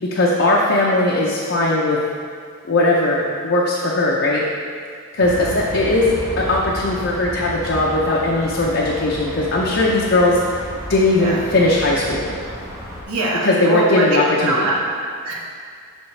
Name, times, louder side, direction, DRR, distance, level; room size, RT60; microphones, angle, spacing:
voice 1, 0.0-2.0 2.7-4.5 5.1-6.1 6.4-10.6 10.9-12.4 13.4-14.7, left 2 dB, 55° left, -4 dB, 0.6 m, -18 dB
sound 1, 5.2-13.0, equal, 15° right, 0.8 m, -32 dB
voice 2, 5.2-5.6 11.1-11.4 13.1-15.3, right 2 dB, 85° right, -3 dB, 1.2 m, -23 dB
7.1 x 6.2 x 3.2 m, 2.2 s
head